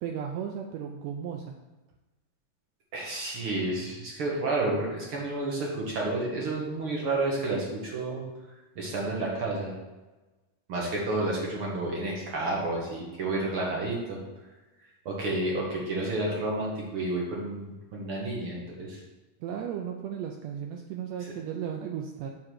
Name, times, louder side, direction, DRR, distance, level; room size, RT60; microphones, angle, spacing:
voice 1, 0.0-1.5 19.4-22.3, right 8 dB, 85° right, 3 dB, 1.5 m, -35 dB
voice 2, 2.9-8.2 8.8-9.7 10.7-14.2 15.1-19.0, right 2 dB, 55° right, -3 dB, 1.6 m, -30 dB
7.6 x 3.8 x 6.4 m, 1.1 s
omnidirectional pair, 3.7 m